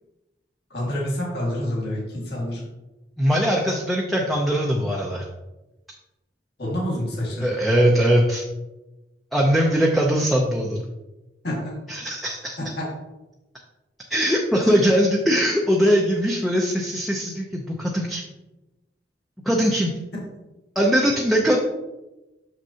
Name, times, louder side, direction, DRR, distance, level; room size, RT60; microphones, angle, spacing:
voice 1, 0.7-2.6 6.6-7.5 11.4-11.8 12.6-12.9 14.6-14.7, left 1 dB, 60° left, -4 dB, 1.8 m, -28 dB
voice 2, 3.2-5.3 7.4-8.4 9.3-10.8 11.9-12.6 14.1-18.2 19.4-19.9 20.7-21.6, equal, ahead, -3 dB, 0.5 m, -21 dB
6.5 x 6.1 x 2.8 m, 1.0 s
head